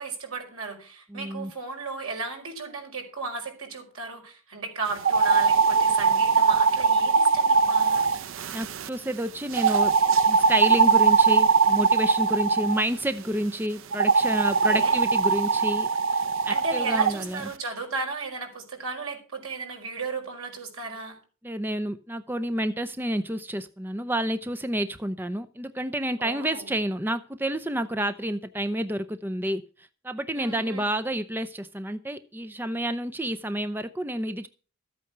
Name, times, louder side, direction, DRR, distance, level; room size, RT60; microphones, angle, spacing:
voice 1, 0.0-8.0 14.5-15.0 16.4-21.2 26.2-26.7 30.3-30.9, right 4 dB, 80° right, 2 dB, 5.0 m, -35 dB
voice 2, 1.1-1.5 8.5-9.9 10.2-17.5 21.4-34.5, right 1 dB, 10° right, 11 dB, 0.5 m, -29 dB
sound 1, 5.0-8.9 9.5-12.8 13.9-17.1, right 5 dB, 65° right, 0.6 m, -21 dB
14.0 x 8.6 x 6.6 m, 0.37 s
head